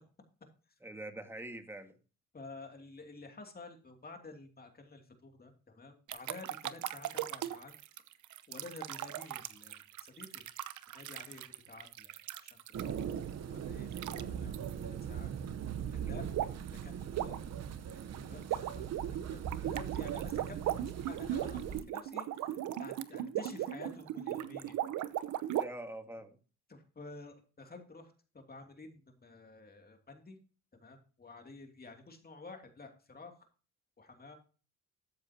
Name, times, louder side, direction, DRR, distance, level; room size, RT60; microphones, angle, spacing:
voice 1, 0.8-2.0 25.6-26.4, right 1 dB, 10° right, 6 dB, 1.8 m, -44 dB
voice 2, 2.3-7.7 8.5-10.4 10.9-12.9 13.5-14.6 14.8-15.3 15.9-16.3 16.8-17.4 17.9-24.8 26.7-30.4 30.8-33.4 34.0-34.3, left 3 dB, 30° left, 4 dB, 2.7 m, -51 dB
sound 1, 6.1-13.1 13.9-14.2 14.5-14.7 16.3-16.7 17.0-25.6, right 12 dB, 80° right, 0.9 m, -38 dB
sound 2, 12.7-21.8, right 8 dB, 55° right, 1.0 m, -40 dB
13.5 x 8.1 x 2.9 m, 0.36 s
cardioid pair, 90°, 30 cm